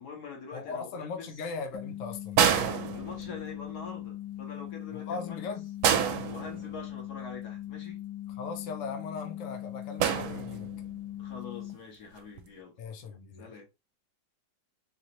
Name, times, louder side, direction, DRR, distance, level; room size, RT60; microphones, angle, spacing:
voice 1, 0.0-1.3 2.9-5.5 6.3-8.0 11.2-12.8 13.4-13.7, left 4 dB, 55° left, 1.8 m, -44 dB
voice 2, 0.5-2.4 4.9-5.7 8.4-10.7 12.8-13.5, left 4 dB, 75° left, 0.7 m, -39 dB
sound 1, 1.7-11.7, left 13 dB, 90° left, 1.5 m, -40 dB
sound 2, 2.4-3.6 5.8-7.1 10.0-10.9 12.2-12.4, right 8 dB, 80° right, 1.4 m, -28 dB
4.0 x 2.9 x 2.9 m
omnidirectional pair, 2.2 m